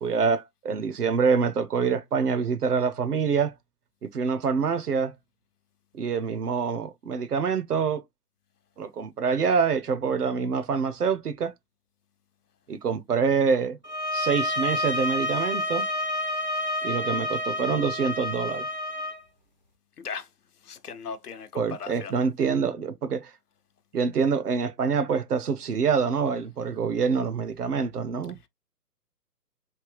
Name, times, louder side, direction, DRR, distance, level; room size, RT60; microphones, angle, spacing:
voice 1, 0.0-3.5 4.0-5.1 5.9-8.0 8.8-11.5 12.7-13.8 14.1-15.9 16.8-18.7 21.5-23.3 23.9-28.4, right 5 dB, 70° right, 0.7 m, -26 dB
sound 1, 13.8-19.2, left 1 dB, 30° right, 0.4 m, -29 dB
voice 2, 20.0-20.3 20.6-22.1, left 6 dB, 70° left, 0.8 m, -37 dB
3.3 x 2.7 x 3.2 m
figure-of-eight pair, 130°, 48 cm